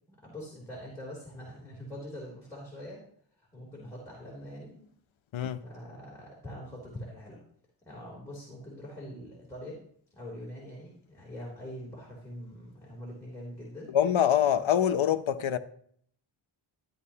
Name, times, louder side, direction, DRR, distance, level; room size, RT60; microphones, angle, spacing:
voice 1, 0.1-3.0 3.4-4.9 5.6-7.4 7.8-9.8 10.1-13.9, equal, 5° left, 3.0 m, -43 dB
voice 2, 5.3-5.6 13.9-15.6, left 9 dB, 75° left, 0.7 m, -25 dB
13.0 x 10.0 x 2.8 m
wide cardioid pair, 160°, 47 cm